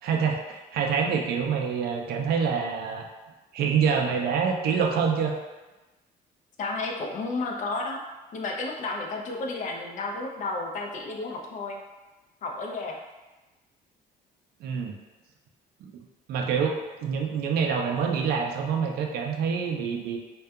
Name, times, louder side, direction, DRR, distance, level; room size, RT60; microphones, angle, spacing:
voice 1, 0.0-3.1 3.5-5.4 14.6-14.9 15.8-15.9 16.3-20.2, right 6 dB, 70° right, 2 dB, 0.4 m, -26 dB
voice 2, 6.6-8.0 8.3-11.8 12.4-13.0, left 3 dB, 50° left, 1 dB, 0.4 m, -32 dB
2.6 x 2.2 x 2.3 m, 1.1 s
cardioid pair, 110°, 17 cm